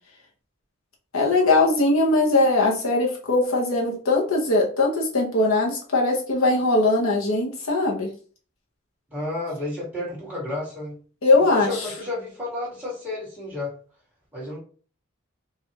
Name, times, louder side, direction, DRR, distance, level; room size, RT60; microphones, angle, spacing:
voice 1, 1.1-8.1 11.2-11.7, left 2 dB, 90° left, -2 dB, 1.2 m, -20 dB
voice 2, 9.1-10.9 11.4-13.7 14.3-14.6, left 2 dB, 5° right, -7 dB, 2.1 m, -31 dB
4.7 x 2.7 x 3.0 m, 0.41 s
head